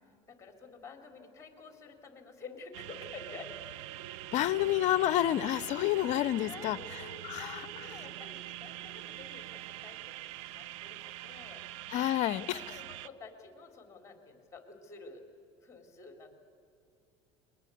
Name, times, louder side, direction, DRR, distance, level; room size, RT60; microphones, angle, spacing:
voice 1, 0.3-3.7 6.1-10.2 10.5-11.6 12.2-12.3 12.8-15.2 15.6-16.5, left 4 dB, 20° left, 5 dB, 3.8 m, -50 dB
sound 1, 2.7-13.1, right 14 dB, 80° right, 0.7 m, -44 dB
voice 2, 4.3-6.8 7.2-7.7 11.9-12.8, left 13 dB, 55° left, 18 dB, 0.6 m, -29 dB
21.0 x 21.0 x 8.6 m, 2.3 s
supercardioid pair, 100°, 15 cm